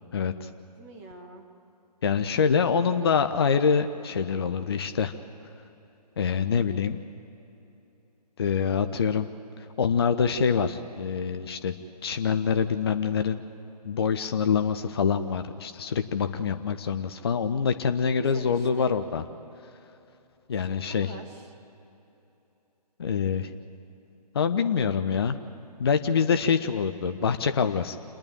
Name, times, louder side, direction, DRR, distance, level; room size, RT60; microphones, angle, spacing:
voice 1, 0.1-0.5 2.0-5.1 6.2-7.0 8.4-9.3 9.6-11.7 12.0-13.4 13.8-19.2 20.5-21.1 23.0-23.5 24.3-25.4 25.8-28.0, left 6 dB, 35° left, 8 dB, 0.6 m, -25 dB
voice 2, 0.8-1.4 18.1-18.9 20.6-21.5, right 3 dB, 20° right, 3 dB, 1.6 m, -45 dB
28.0 x 10.5 x 9.0 m, 3.0 s
figure-of-eight pair, 145°, 21 cm